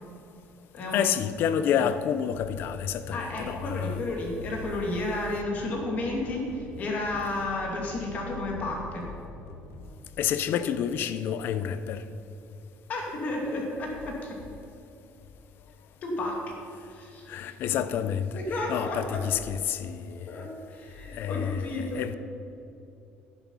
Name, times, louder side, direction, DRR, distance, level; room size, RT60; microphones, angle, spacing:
voice 1, 0.9-4.0 10.2-12.0 17.3-18.4 18.7-20.5 21.1-22.1, left 9 dB, 55° left, 0.6 m, -29 dB
sound 1, 2.3-9.9, equal, 80° left, 1.2 m, -44 dB
voice 2, 3.1-9.1 12.9-14.4 16.0-16.5 16.9-17.8 18.3-19.2 20.3-22.0, left 2 dB, 35° left, 2.4 m, -32 dB
11.0 x 11.0 x 5.5 m
cardioid pair, 180°, 4 cm